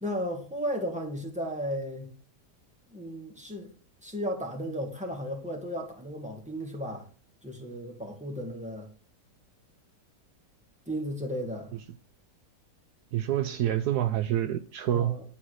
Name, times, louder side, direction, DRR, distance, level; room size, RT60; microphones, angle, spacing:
voice 1, 0.0-2.1 2.9-3.7 4.0-7.1 7.4-8.9 10.9-11.7 14.9-15.2, equal, 5° right, 2.2 m, -34 dB
voice 2, 13.1-15.2, right 12 dB, 75° right, 1.1 m, -27 dB
10.5 x 4.6 x 6.5 m
omnidirectional pair, 1.8 m